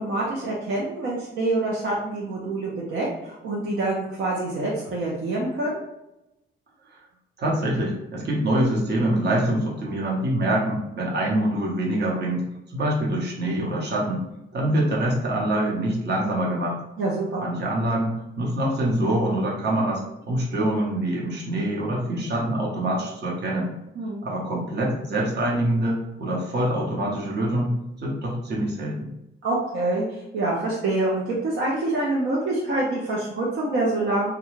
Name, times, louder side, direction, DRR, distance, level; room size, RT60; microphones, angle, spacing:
voice 1, 0.0-5.8 17.0-17.4 24.0-24.2 29.4-34.3, right 2 dB, 75° right, -5 dB, 0.6 m, -26 dB
voice 2, 7.4-12.4 12.7-14.2 14.5-16.8 17.4-23.7 24.2-27.7 28.0-29.1, right 1 dB, 55° right, -3 dB, 0.9 m, -25 dB
2.4 x 2.2 x 3.1 m, 0.88 s
cardioid pair, 105°, 21 cm